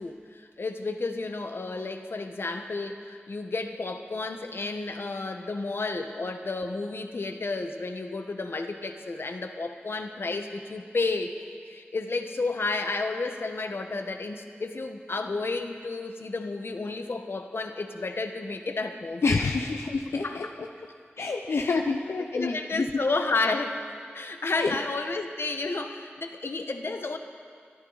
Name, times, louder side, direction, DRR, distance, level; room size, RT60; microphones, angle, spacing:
voice 1, 0.0-11.3 11.7-19.2 20.2-20.4 21.2-23.8 24.1-27.2, left 3 dB, 65° left, 6 dB, 1.1 m, -32 dB
voice 2, 19.2-20.7 21.2-22.9 24.6-24.8, left 4 dB, 90° left, 3 dB, 0.7 m, -28 dB
23.0 x 13.5 x 4.0 m, 2.1 s
wide cardioid pair, 55°, 4 cm